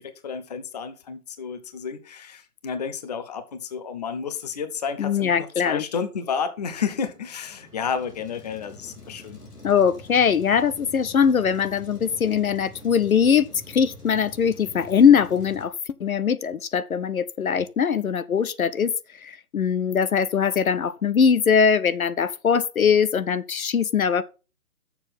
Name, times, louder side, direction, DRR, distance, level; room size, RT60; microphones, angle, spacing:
voice 1, 0.0-9.4, left 6 dB, 25° left, 0.7 m, -31 dB
voice 2, 5.0-5.8 9.6-15.7 16.0-24.2, left 7 dB, 65° left, 0.7 m, -21 dB
Truck, 6.9-15.7, left 1 dB, 80° left, 3.0 m, -45 dB
7.0 x 6.2 x 5.4 m
figure-of-eight pair, 135°, 45 cm